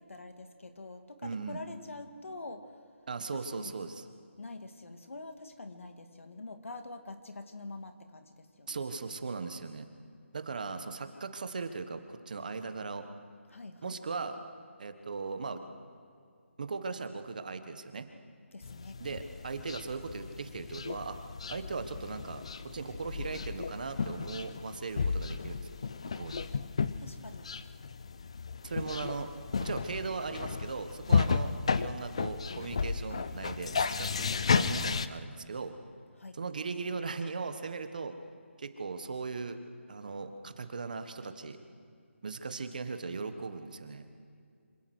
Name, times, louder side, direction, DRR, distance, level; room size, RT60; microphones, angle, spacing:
voice 1, 0.0-2.8 3.3-3.8 4.4-8.8 13.5-14.0 18.5-19.0 27.0-27.5 36.1-36.4, left 2 dB, 75° left, 7 dB, 2.2 m, -45 dB
voice 2, 1.2-1.6 3.1-4.0 8.7-9.9 10.3-13.1 13.8-14.4 14.8-15.6 16.6-18.1 19.0-21.2 21.5-22.4 22.7-25.7 26.1-26.4 28.6-29.3 29.6-35.7 36.3-38.1 38.6-39.6 39.9-41.6 42.2-44.1, right 4 dB, 40° right, 8 dB, 1.4 m, -38 dB
sound 1, 18.6-35.1, left 5 dB, 25° left, 0.4 m, -33 dB
26.0 x 17.5 x 6.3 m, 2.3 s
hypercardioid pair, 175°, 7 cm